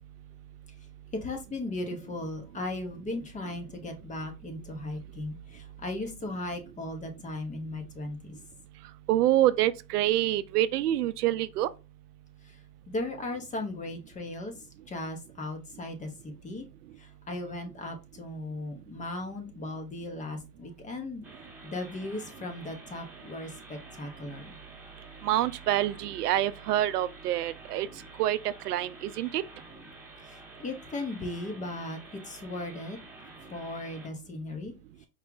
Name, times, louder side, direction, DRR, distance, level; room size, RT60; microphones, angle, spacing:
voice 1, 1.2-8.3 12.5-12.6 12.9-14.5 14.9-16.6 17.0-21.2 21.6-24.6 30.3-33.0 33.5-34.7, left 2 dB, 15° left, 0.8 m, -37 dB
voice 2, 9.1-11.7 25.2-27.9 28.2-29.4, right 13 dB, 70° right, 0.5 m, -26 dB
sound 1, 21.2-34.1, right 2 dB, 5° right, 1.1 m, -50 dB
4.8 x 2.3 x 3.7 m
hypercardioid pair, 105°, 48 cm